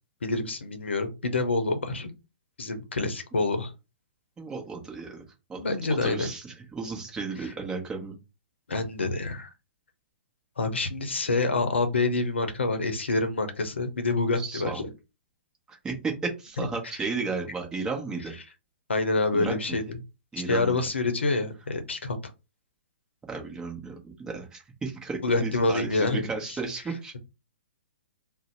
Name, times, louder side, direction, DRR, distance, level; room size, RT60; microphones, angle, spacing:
voice 1, 0.2-2.1 2.6-3.7 5.6-6.3 8.7-9.5 10.6-14.9 18.9-20.0 20.5-22.2 25.2-26.3, left 3 dB, 85° left, 8 dB, 0.7 m, -27 dB
voice 2, 4.4-5.2 5.5-5.6 6.0-8.2 14.4-14.8 15.7-18.4 19.3-19.8 20.3-20.8 23.3-27.1, right 4 dB, 10° right, 1 dB, 0.9 m, -34 dB
2.6 x 2.1 x 4.0 m, 0.27 s
hypercardioid pair, 130°, 6 cm